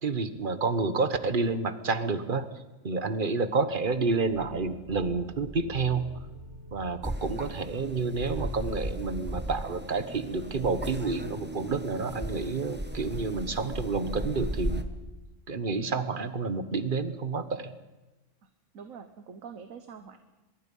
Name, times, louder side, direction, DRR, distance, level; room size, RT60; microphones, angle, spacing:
voice 1, 0.0-2.4 2.8-6.1 6.7-14.9 15.5-17.7, right 4 dB, 40° right, 11 dB, 1.3 m, -29 dB
sound 1, 3.6-15.0, right 1 dB, 55° right, 2.6 m, -50 dB
sound 2, 7.0-14.8, right 1 dB, 10° right, 1.1 m, -36 dB
voice 2, 18.7-20.2, right 6 dB, 85° right, 9 dB, 1.5 m, -45 dB
24.0 x 22.5 x 5.5 m, 1.1 s
omnidirectional pair, 1.4 m